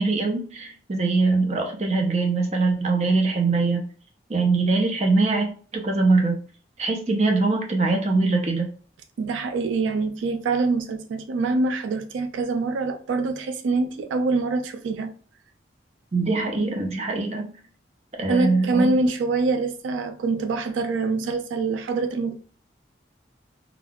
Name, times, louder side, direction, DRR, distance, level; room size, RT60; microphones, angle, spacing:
voice 1, 0.0-3.8 4.3-6.4 6.8-8.7 16.1-17.5 18.2-18.9, right 3 dB, 35° right, 0.5 m, -22 dB
voice 2, 9.2-15.1 18.3-22.4, right 3 dB, 85° right, 0.3 m, -25 dB
2.4 x 2.3 x 3.3 m
head